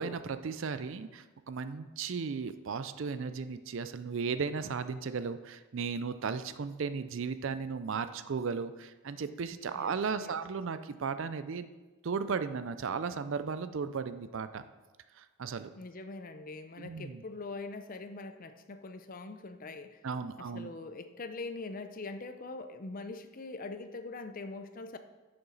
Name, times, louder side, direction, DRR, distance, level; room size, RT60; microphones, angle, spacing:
voice 1, 0.0-11.7 12.0-14.6 15.1-15.7 16.8-17.2 20.0-20.7, right 5 dB, 55° right, 12 dB, 0.4 m, -35 dB
voice 2, 15.8-20.0 20.4-25.0, left 3 dB, 40° left, 9 dB, 0.6 m, -43 dB
10.5 x 6.8 x 4.0 m, 1.2 s
head